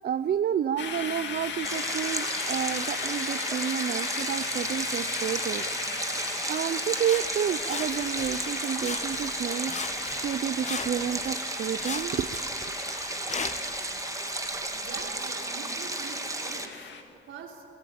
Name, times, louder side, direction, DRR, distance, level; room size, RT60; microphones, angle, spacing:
voice 1, 0.0-5.6 6.5-12.8, right 9 dB, 50° right, 12 dB, 0.6 m, -30 dB
sound 1, 0.8-17.0, left 6 dB, 65° left, 2.2 m, -37 dB
Stream, 1.6-16.7, right 2 dB, 15° right, 1.8 m, -33 dB
Sawing, 7.0-8.5 8.8-9.4 9.7-11.4 11.8-13.8 14.4-14.5, left 5 dB, 35° left, 1.1 m, -39 dB
voice 2, 14.7-17.7, right 5 dB, 80° right, 1 dB, 3.4 m, -44 dB
24.5 x 17.5 x 8.7 m, 2.6 s
cardioid pair, 90°, 20 cm